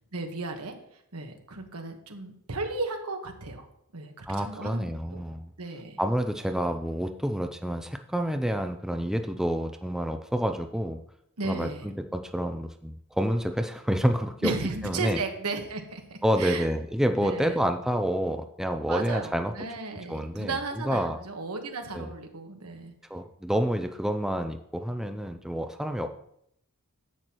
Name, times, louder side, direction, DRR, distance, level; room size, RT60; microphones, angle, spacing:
voice 1, 0.1-0.7 1.1-3.7 3.9-4.8 5.1-5.2 5.6-6.0 11.4-11.9 14.4-16.7 17.2-17.6 18.9-22.9, right 3 dB, 80° right, 4 dB, 1.3 m, -35 dB
voice 2, 4.3-5.5 6.0-11.0 11.4-14.5 14.8-15.2 16.2-19.5 20.1-20.6 20.8-21.2 21.9-22.1 23.1-26.1, equal, ahead, 6 dB, 0.4 m, -28 dB
11.0 x 7.9 x 3.0 m, 0.72 s
head